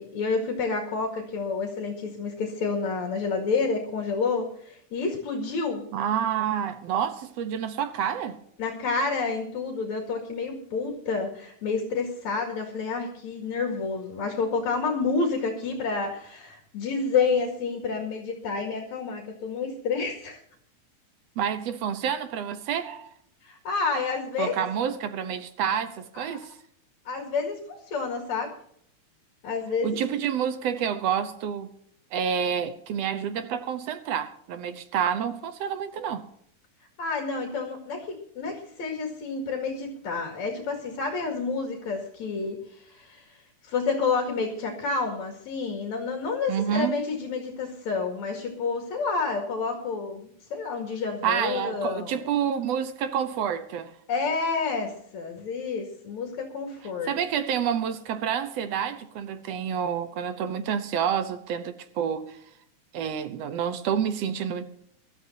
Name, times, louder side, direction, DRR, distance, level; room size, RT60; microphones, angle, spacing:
voice 1, 0.0-5.8 8.6-20.4 23.4-24.6 25.7-25.8 26.2-26.4 27.1-28.5 29.4-30.0 37.0-43.4 43.6-52.1 54.1-57.1, left 4 dB, 65° left, 3.5 m, -29 dB
voice 2, 5.9-8.4 21.4-23.1 24.4-26.5 29.8-31.7 32.1-36.3 46.5-47.0 51.2-53.9 57.1-62.4 62.9-64.7, right 8 dB, 65° right, 1.8 m, -28 dB
23.5 x 13.0 x 2.8 m
omnidirectional pair, 3.6 m